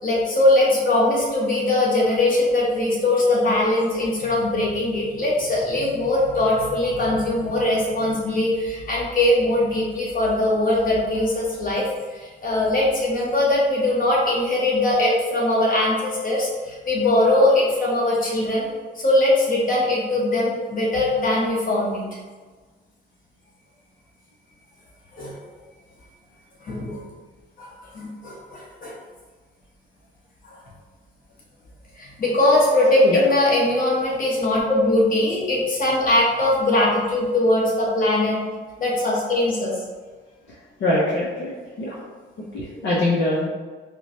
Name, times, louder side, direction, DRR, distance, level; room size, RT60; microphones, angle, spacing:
voice 1, 0.0-22.0 25.1-25.3 26.6-27.0 27.6-28.9 30.4-30.5 32.0-38.4 38.8-39.8, left 1 dB, 45° left, -4 dB, 1.2 m, -21 dB
voice 2, 40.8-41.5 41.8-42.0 42.5-43.4, left 1 dB, 65° left, -6 dB, 0.8 m, -22 dB
4.4 x 2.2 x 2.7 m, 1.4 s
cardioid pair, 90°, 20 cm